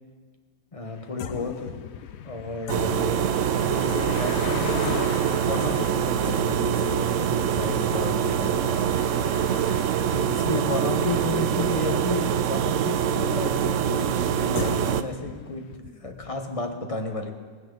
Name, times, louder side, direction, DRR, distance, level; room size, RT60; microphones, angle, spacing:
voice 1, 0.7-1.8 2.2-3.2 3.6-8.9 10.1-17.3, left 3 dB, 25° left, 4 dB, 1.2 m, -32 dB
sound 1, 0.9-12.9, left 8 dB, 60° left, 0.8 m, -43 dB
sound 2, 1.2-13.0 14.6-16.7, left 10 dB, 85° left, 1.1 m, -40 dB
sound 3, 2.7-15.0, right 9 dB, 70° right, 0.9 m, -24 dB
18.0 x 15.5 x 3.9 m, 1.5 s
omnidirectional pair, 1.4 m